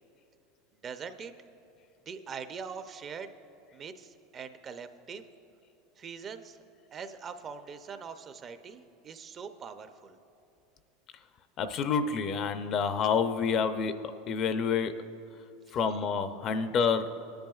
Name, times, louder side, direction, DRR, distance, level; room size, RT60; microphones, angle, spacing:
voice 1, 0.8-1.3 2.1-3.3 3.7-5.2 6.0-6.6 6.9-10.2 15.7-15.8, right 6 dB, 30° right, 9 dB, 0.5 m, -42 dB
voice 2, 11.6-15.0 15.7-17.2, left 6 dB, 40° left, 10 dB, 0.5 m, -28 dB
19.0 x 10.5 x 2.4 m, 2.7 s
supercardioid pair, 125°, 0 cm